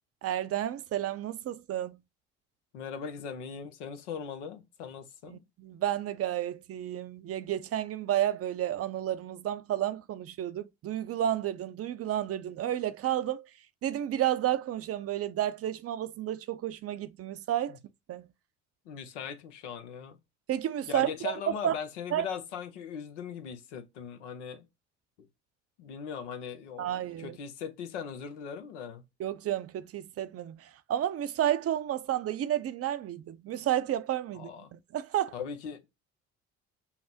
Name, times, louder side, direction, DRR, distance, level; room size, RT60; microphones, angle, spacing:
voice 1, 0.2-2.0 5.3-13.5 13.8-17.8 18.1-18.3 20.5-21.8 22.1-22.3 26.8-27.4 29.2-35.3, right 11 dB, 45° right, 0.5 m, -31 dB
voice 2, 2.7-5.4 17.7-17.8 18.9-20.2 20.9-24.6 25.8-29.1 34.3-34.7 35.3-35.9, left 7 dB, 85° left, 0.7 m, -40 dB
5.6 x 2.0 x 2.7 m
hypercardioid pair, 60°, 34 cm